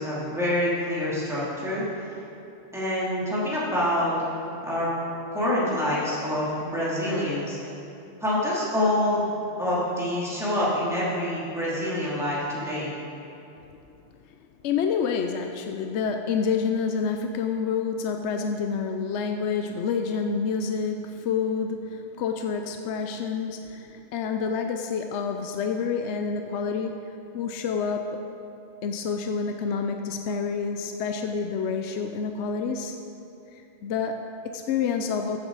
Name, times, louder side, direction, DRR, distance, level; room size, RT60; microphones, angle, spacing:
voice 1, 0.0-1.8 2.7-4.1 4.6-4.9 5.3-7.6 8.2-9.2 9.6-12.9, left 1 dB, ahead, -9 dB, 2.7 m, -26 dB
voice 2, 14.6-28.2 28.8-33.0 33.5-35.4, left 5 dB, 75° left, 5 dB, 0.9 m, -28 dB
14.0 x 8.0 x 4.0 m, 2.8 s
omnidirectional pair, 1.2 m